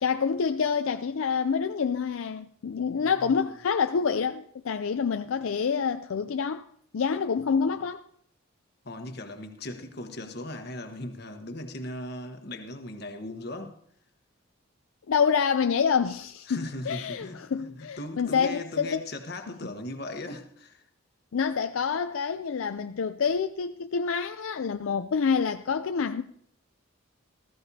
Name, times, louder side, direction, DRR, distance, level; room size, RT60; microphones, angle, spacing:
voice 1, 0.0-6.7 6.9-8.0 15.1-19.0 21.3-26.2, left 6 dB, 75° left, 0.4 m, -27 dB
voice 2, 3.0-3.3 8.8-13.8 16.5-20.8, left 1 dB, 50° left, 1.3 m, -38 dB
19.0 x 14.0 x 2.8 m
head